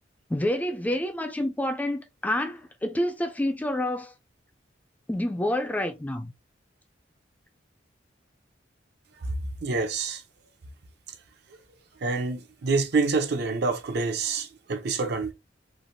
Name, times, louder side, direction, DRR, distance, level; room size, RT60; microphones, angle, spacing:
voice 1, 0.3-4.1 5.1-6.3, left 1 dB, 10° left, 0.3 m, -28 dB
voice 2, 9.6-10.2 12.0-15.3, right 4 dB, 60° right, 0.6 m, -27 dB
3.2 x 2.4 x 2.6 m
head